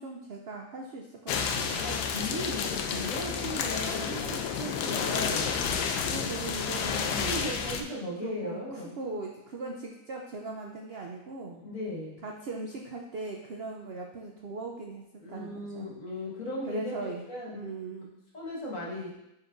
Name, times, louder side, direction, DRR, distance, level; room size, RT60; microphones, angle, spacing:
voice 1, 0.0-1.8 6.0-7.6 8.2-11.6 12.2-15.0 15.3-15.9 16.7-18.1, right 3 dB, 80° right, 1 dB, 0.5 m, -39 dB
sound 1, 1.3-7.8, left 6 dB, 85° left, 1.2 m, -30 dB
voice 2, 1.7-5.6 7.1-9.0 11.6-12.2 15.2-17.7 18.3-19.1, left 1 dB, 50° left, -5 dB, 1.9 m, -37 dB
9.2 x 4.4 x 2.5 m, 0.86 s
omnidirectional pair, 1.8 m